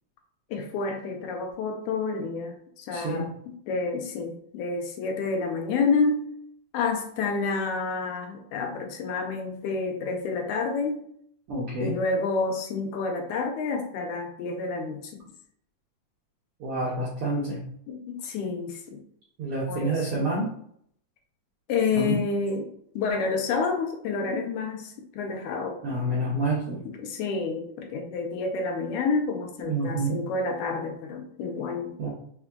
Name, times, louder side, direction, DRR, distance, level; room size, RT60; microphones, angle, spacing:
voice 1, 0.5-6.3 6.7-11.1 11.8-15.1 17.9-19.0 19.7-20.3 21.7-22.7 23.0-25.8 26.9-32.0, left 4 dB, 80° left, 3 dB, 1.9 m, -29 dB
voice 2, 2.9-3.3 11.5-12.0 16.6-17.6 19.4-20.5 22.0-22.2 25.8-26.9 29.6-30.2 32.0-32.1, right 2 dB, 75° right, -5 dB, 1.2 m, -28 dB
5.9 x 2.2 x 3.4 m, 0.67 s
omnidirectional pair, 3.7 m